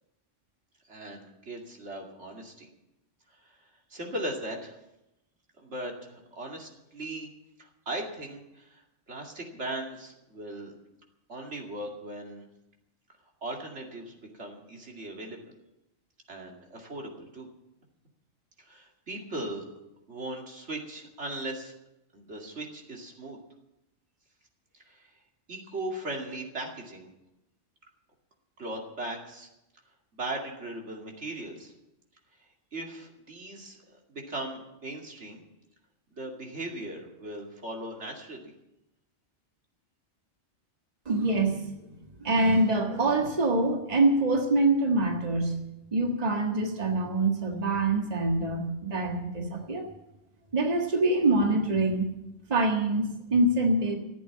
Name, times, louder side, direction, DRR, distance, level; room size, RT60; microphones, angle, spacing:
voice 1, 0.8-2.7 3.3-4.8 5.6-7.3 7.6-10.7 11.3-12.5 13.4-15.4 16.3-17.5 18.6-19.6 20.1-21.8 22.1-23.4 24.7-25.2 25.5-27.1 28.6-29.5 30.1-31.7 32.4-35.4 36.1-38.5, right 1 dB, 70° right, 0 dB, 2.7 m, -38 dB
voice 2, 41.0-41.7 42.2-45.6 45.9-49.9 50.5-52.1 52.5-54.0, right 2 dB, 35° right, 2 dB, 1.7 m, -25 dB
15.0 x 8.6 x 8.6 m, 0.91 s
omnidirectional pair, 1.2 m